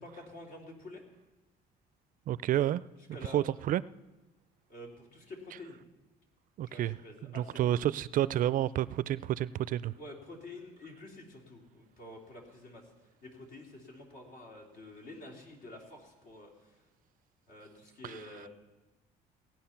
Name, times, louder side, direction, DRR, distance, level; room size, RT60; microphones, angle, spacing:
voice 1, 0.0-1.0 3.1-3.4 4.7-5.8 6.6-7.8 10.0-12.8 13.2-16.7 17.5-18.5, left 2 dB, 75° left, 0 dB, 3.3 m, -48 dB
voice 2, 2.3-2.8 3.3-3.8 6.6-7.0 7.2-9.9 18.0-18.3, right 12 dB, 55° right, 18 dB, 0.4 m, -30 dB
18.0 x 9.1 x 5.8 m, 1.1 s
cardioid pair, 110°, 17 cm